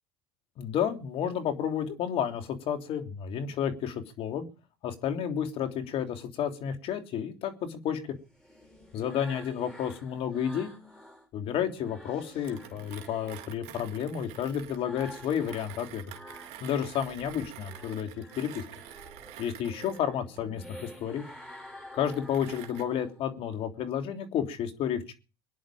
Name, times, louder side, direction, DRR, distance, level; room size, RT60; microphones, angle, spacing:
voice 1, 0.6-4.5 4.8-8.0 8.9-10.7 11.3-16.0 16.6-18.1 18.4-18.6 19.4-21.2 21.9-25.1, left 9 dB, 50° left, 5 dB, 3.2 m, -31 dB
sound 1, 7.9-11.3 11.7-17.0 17.4-23.3, equal, 5° left, 7.4 m, -50 dB
Mechanisms, 12.4-22.8, right 12 dB, 60° right, 2.2 m, -49 dB
23.5 x 10.5 x 5.0 m, 0.35 s
hypercardioid pair, 80°, 12 cm